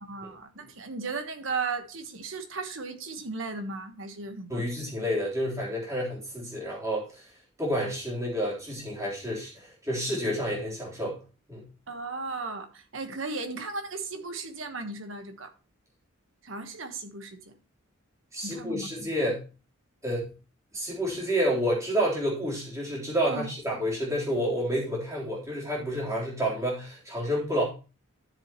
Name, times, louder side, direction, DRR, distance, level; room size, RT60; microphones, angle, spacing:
voice 1, 0.0-4.6 11.9-15.5 16.4-17.5 18.4-18.9 23.3-23.5, right 3 dB, 65° right, 1.3 m, -36 dB
voice 2, 4.5-7.3 7.6-11.2 11.5-11.6 18.3-19.4 20.0-20.3 20.7-27.6, equal, 15° right, 3.8 m, -29 dB
12.5 x 7.3 x 3.0 m
head